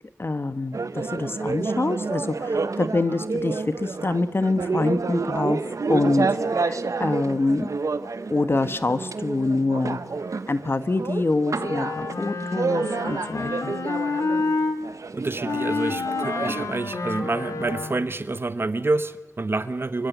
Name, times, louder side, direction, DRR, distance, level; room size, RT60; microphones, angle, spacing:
voice 1, 0.2-7.7 8.3-10.0 10.5-13.7, left 2 dB, 45° left, 12 dB, 1.3 m, -25 dB
sound 1, 0.7-16.8, right 4 dB, 75° right, 1.0 m, -29 dB
Wind instrument woodwind instrument, 11.5-14.8 15.4-18.2, left 3 dB, 85° left, 2.2 m, -29 dB
voice 2, 15.1-20.1, right 3 dB, 45° right, 13 dB, 1.1 m, -27 dB
25.5 x 24.0 x 8.2 m, 1.2 s
wide cardioid pair, 80°, 5 cm